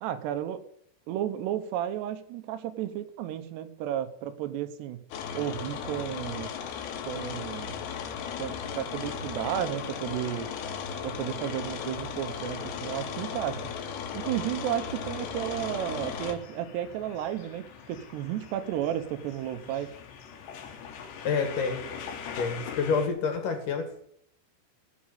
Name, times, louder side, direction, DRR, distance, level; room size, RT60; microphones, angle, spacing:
voice 1, 0.0-0.6 1.1-5.1 5.3-6.5 7.0-7.7 8.4-10.5 11.0-13.7 14.1-19.9, right 11 dB, 80° right, 11 dB, 3.1 m, -33 dB
sound 1, 5.1-16.4, left 7 dB, 75° left, 3.3 m, -36 dB
sound 2, 14.4-23.1, left 6 dB, 90° left, 3.9 m, -43 dB
voice 2, 21.2-21.8 22.4-24.0, left 5 dB, 55° left, 6 dB, 3.2 m, -28 dB
16.0 x 6.3 x 8.8 m, 0.65 s
omnidirectional pair, 4.8 m